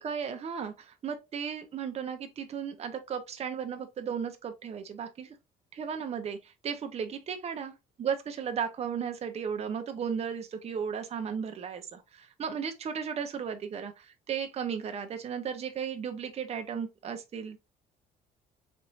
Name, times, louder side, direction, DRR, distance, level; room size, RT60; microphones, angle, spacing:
voice 1, 0.0-5.4 5.7-7.7 8.0-17.6, right 7 dB, 40° right, 0.7 m, -35 dB
4.3 x 3.1 x 2.6 m
cardioid pair, 110°, 17 cm